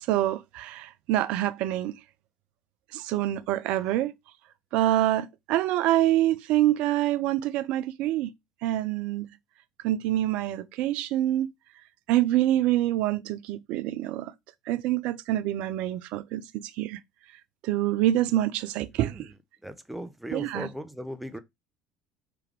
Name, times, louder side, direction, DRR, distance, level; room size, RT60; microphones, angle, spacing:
voice 1, 0.0-1.9 2.9-4.1 4.7-8.3 8.6-9.3 9.8-11.5 12.1-14.3 14.7-17.0 17.6-19.3 20.3-20.7, right 13 dB, 60° right, 0.4 m, -26 dB
voice 2, 19.6-21.4, equal, 5° right, 0.7 m, -38 dB
3.4 x 3.3 x 3.3 m
hypercardioid pair, 65°, 2 cm